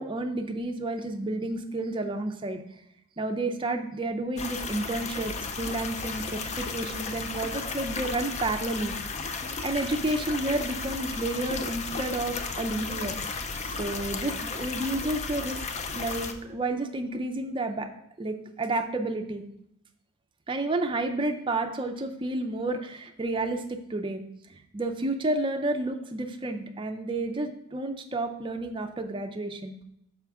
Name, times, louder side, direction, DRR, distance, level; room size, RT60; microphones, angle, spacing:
voice 1, 0.0-2.6 3.2-8.9 9.6-13.2 13.6-15.6 15.9-17.9 18.2-19.4 20.5-24.2 24.5-29.8, right 2 dB, 25° right, 5 dB, 0.5 m, -31 dB
sound 1, 4.4-16.3, left 4 dB, 30° left, 0.4 m, -34 dB
5.9 x 5.0 x 3.5 m, 0.76 s
head